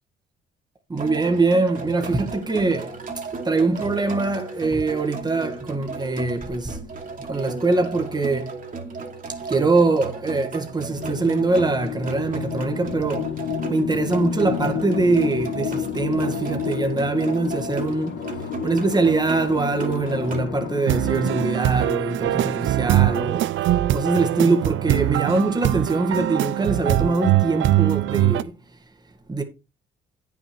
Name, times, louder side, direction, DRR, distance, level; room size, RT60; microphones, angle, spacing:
voice 1, 0.9-3.0 3.5-6.8 7.3-8.6 9.5-13.3 13.7-18.2 18.6-23.5 23.9-28.5 29.3-29.4, right 3 dB, 20° right, 1.7 m, -23 dB
sound 1, 1.0-20.5, right 4 dB, 45° right, 2.5 m, -35 dB
sound 2, 10.9-21.5, left 10 dB, 70° left, 0.8 m, -30 dB
sound 3, 20.9-28.4, right 14 dB, 75° right, 0.6 m, -22 dB
9.5 x 6.2 x 4.5 m
cardioid pair, 90°, 20 cm